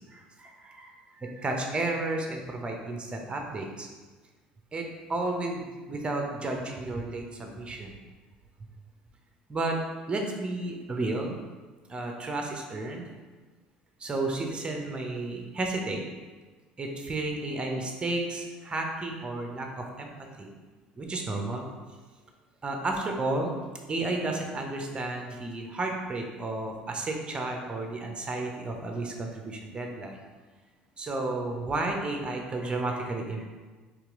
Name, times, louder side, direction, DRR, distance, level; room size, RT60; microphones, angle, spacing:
voice 1, 0.1-0.9 1.2-3.9 4.7-7.9 9.5-9.8 10.1-11.4 11.9-13.1 14.0-16.0 16.8-20.1 20.4-20.5 21.0-21.7 22.6-23.5 23.9-30.2 31.0-33.5, right 2 dB, 20° right, 2 dB, 0.8 m, -32 dB
4.6 x 3.1 x 3.7 m, 1.3 s
figure-of-eight pair, 60°, 5 cm